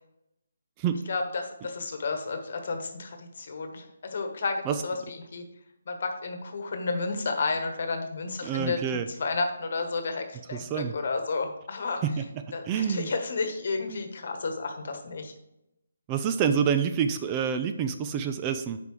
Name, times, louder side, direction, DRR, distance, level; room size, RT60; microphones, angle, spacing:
voice 1, 1.1-5.4 5.9-12.0 12.5-15.3, left 4 dB, 55° left, 6 dB, 1.2 m, -32 dB
voice 2, 8.4-9.0 10.5-10.9 12.0-12.2 12.7-13.1 16.1-18.8, right 7 dB, 20° right, 8 dB, 0.4 m, -27 dB
8.1 x 5.2 x 3.2 m, 0.85 s
figure-of-eight pair, 150°, 0 cm